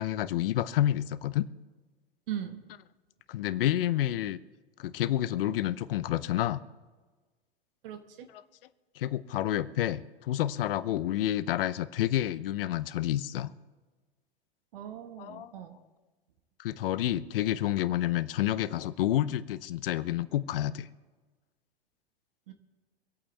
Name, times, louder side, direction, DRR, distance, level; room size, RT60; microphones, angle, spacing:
voice 1, 0.0-1.5 3.3-4.4 4.8-6.6 8.3-8.4 9.0-13.5 15.2-15.5 16.6-20.9, left 13 dB, 65° left, 16 dB, 0.8 m, -29 dB
voice 2, 2.3-2.6 7.8-8.3 14.7-15.8 22.5-22.6, right 10 dB, 65° right, 7 dB, 1.6 m, -39 dB
26.0 x 8.6 x 3.4 m, 1.3 s
hypercardioid pair, 100°, 30 cm